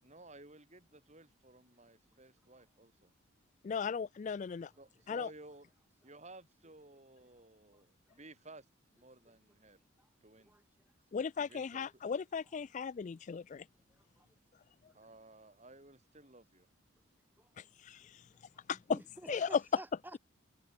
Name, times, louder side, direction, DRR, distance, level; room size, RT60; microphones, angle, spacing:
voice 1, 0.0-3.1 4.8-5.7 6.0-8.7 8.9-9.8 10.2-10.5 11.4-11.9 14.9-16.7 19.3-19.4, right 2 dB, 35° right, 5.7 m, -56 dB
voice 2, 3.6-4.7 5.1-5.3 11.1-13.6 17.8-18.0 18.7-18.8 19.3-19.6, left 6 dB, 35° left, 0.3 m, -36 dB
voice 3, 18.9-20.2, right 1 dB, 10° right, 2.6 m, -50 dB
head